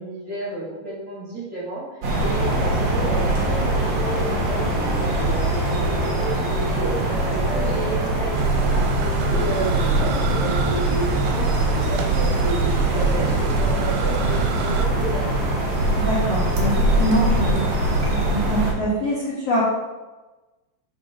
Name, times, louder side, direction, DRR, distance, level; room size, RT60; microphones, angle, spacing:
voice 1, 0.0-1.8 2.2-8.9 9.3-12.7 12.9-15.3, right 2 dB, 30° right, -9 dB, 2.3 m, -31 dB
sound 1, 2.0-18.7, right 1 dB, 60° right, 1.7 m, -23 dB
Wind instrument woodwind instrument, 4.7-11.0, equal, 60° left, 3.3 m, -38 dB
sound 2, 8.3-14.9, right 4 dB, 85° right, 2.8 m, -24 dB
voice 2, 16.0-17.6 18.1-19.6, equal, 80° left, -8 dB, 1.4 m, -24 dB
6.1 x 5.0 x 5.3 m, 1.1 s
omnidirectional pair, 5.2 m